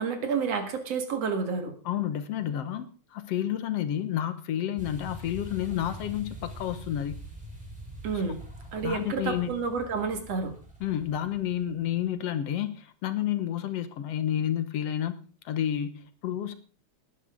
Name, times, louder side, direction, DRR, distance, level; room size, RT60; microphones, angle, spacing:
voice 1, 0.0-1.7 8.0-8.4 8.7-10.5, right 5 dB, 60° right, 6 dB, 2.8 m, -30 dB
voice 2, 1.9-7.2 8.1-8.2 8.8-9.5 10.8-15.2 15.5-16.6, left 11 dB, 65° left, 11 dB, 2.0 m, -30 dB
sound 1, 4.8-12.0, equal, ahead, 4.2 m, -44 dB
19.0 x 10.5 x 3.7 m, 0.39 s
omnidirectional pair, 3.3 m